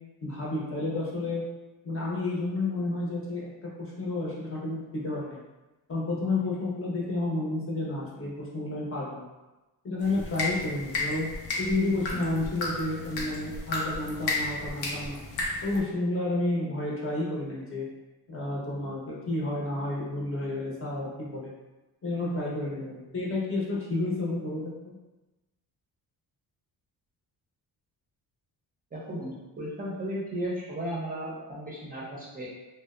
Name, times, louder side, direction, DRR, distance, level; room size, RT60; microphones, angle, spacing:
voice 1, 0.2-1.4 1.8-5.4 5.9-9.3 9.8-11.3 11.6-15.2 15.6-17.9 18.3-21.5 22.0-24.9, left 2 dB, 35° left, -5 dB, 0.7 m, -31 dB
sound 1, 10.0-15.8, left 2 dB, 75° left, 0.7 m, -33 dB
voice 2, 28.9-32.5, right 1 dB, 20° right, -6 dB, 0.5 m, -35 dB
2.7 x 2.0 x 2.3 m, 1.1 s
cardioid pair, 115°, 39 cm